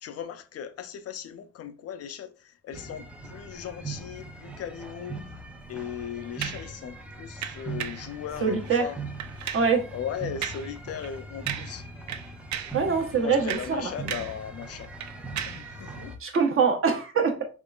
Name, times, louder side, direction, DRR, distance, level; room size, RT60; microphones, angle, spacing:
voice 1, 0.0-5.2 5.7-9.0 9.9-11.9 13.1-14.9 15.5-16.2, left 8 dB, 55° left, 0.5 m, -37 dB
sound 1, 2.7-16.2, right 3 dB, 5° right, 0.6 m, -41 dB
sound 2, 6.4-6.7 7.4-8.1 8.6-8.9 9.2-9.7 10.4-10.7 11.0-11.2 11.5-11.8 12.1-12.8 13.3-14.4 14.7-15.7 16.3-16.5, right 10 dB, 70° right, 0.5 m, -35 dB
voice 2, 8.4-8.9 9.5-9.9 12.7-13.9 16.2-17.5, right 5 dB, 45° right, 0.9 m, -24 dB
3.6 x 3.1 x 2.4 m
cardioid pair, 90°, 30 cm